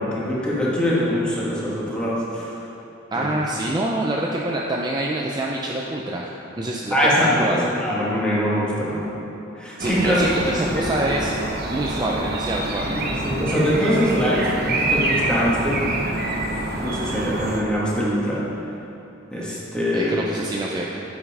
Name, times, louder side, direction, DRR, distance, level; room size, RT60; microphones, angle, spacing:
voice 1, 0.0-2.5 3.1-3.3 6.9-9.0 9.6-10.9 12.8-15.8 16.8-18.4 19.3-20.1, equal, 5° left, -7 dB, 1.6 m, -23 dB
voice 2, 3.1-6.3 6.6-7.7 9.8-11.3 11.7-12.9 19.9-21.0, right 1 dB, 20° right, -2 dB, 0.4 m, -26 dB
sound 1, 9.8-17.6, right 2 dB, 55° right, 0.8 m, -26 dB
8.0 x 5.4 x 4.8 m, 3.0 s
head